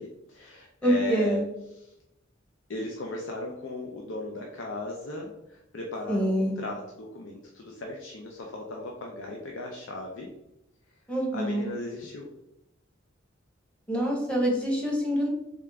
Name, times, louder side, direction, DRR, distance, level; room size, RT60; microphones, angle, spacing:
voice 1, 0.0-1.4 1.7-1.9 2.7-10.3 11.3-12.3, left 1 dB, 70° left, 0 dB, 0.5 m, -37 dB
voice 2, 0.8-1.4 6.1-6.5 11.1-11.7 13.9-15.3, equal, 5° left, -2 dB, 0.9 m, -25 dB
3.6 x 3.4 x 3.4 m, 0.87 s
head